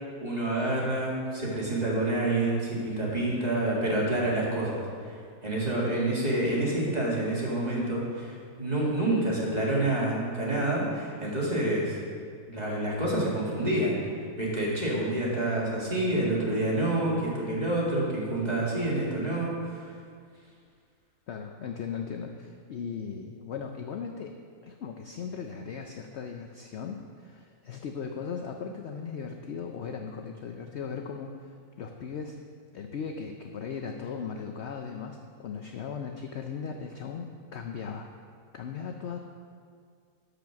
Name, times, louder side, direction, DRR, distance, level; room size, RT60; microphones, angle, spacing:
voice 1, 0.2-5.1 5.4-12.0 12.5-14.0 14.4-19.9, right 1 dB, 25° right, -5 dB, 2.1 m, -28 dB
voice 2, 21.3-24.3 24.6-32.4 32.7-38.1 38.5-39.2, left 6 dB, 60° left, 4 dB, 0.7 m, -38 dB
13.0 x 5.2 x 5.9 m, 2.1 s
omnidirectional pair, 1.6 m